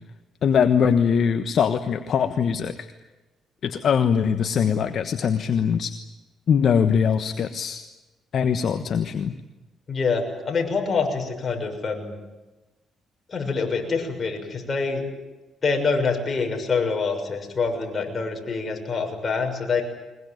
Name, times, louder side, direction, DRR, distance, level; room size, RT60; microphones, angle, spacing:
voice 1, 0.4-2.9 3.6-5.9 6.5-7.8 8.3-9.3, left 7 dB, 60° left, 9 dB, 1.3 m, -22 dB
voice 2, 9.9-12.2 13.3-15.0 15.6-19.8, left 4 dB, 40° left, 3 dB, 6.4 m, -25 dB
22.5 x 21.5 x 9.3 m, 1.1 s
cardioid pair, 90°, 0 cm